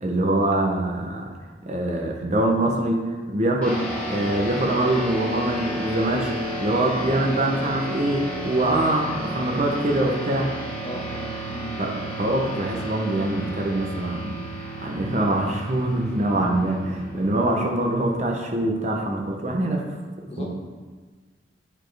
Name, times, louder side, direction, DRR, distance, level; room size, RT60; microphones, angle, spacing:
voice 1, 0.0-1.3 1.6-6.3 6.6-10.5 11.8-19.8 20.4-20.5, right 1 dB, 35° right, 1 dB, 0.7 m, -24 dB
sound 1, 3.6-18.4, equal, 5° left, 1.3 m, -33 dB
voice 2, 10.8-11.7 20.3-20.5, left 1 dB, 30° left, -1 dB, 1.0 m, -37 dB
8.8 x 4.1 x 3.3 m, 1.4 s
head